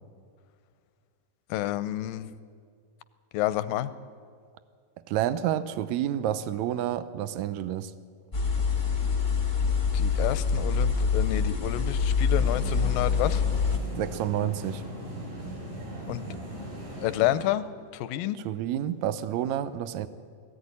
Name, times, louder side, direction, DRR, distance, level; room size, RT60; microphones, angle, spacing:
voice 1, 1.5-2.3 3.3-3.9 9.9-13.4 16.1-16.3 17.0-17.6 17.9-18.4, left 14 dB, 85° left, 14 dB, 2.4 m, -29 dB
voice 2, 5.1-7.9 14.0-14.8 18.5-20.1, right 11 dB, 75° right, 13 dB, 1.7 m, -29 dB
sound 1, 8.3-13.8, left 5 dB, 25° left, 1.0 m, -25 dB
sound 2, 12.3-17.4, equal, 60° right, 7.1 m, -39 dB
20.0 x 14.5 x 9.7 m, 2.1 s
omnidirectional pair, 4.0 m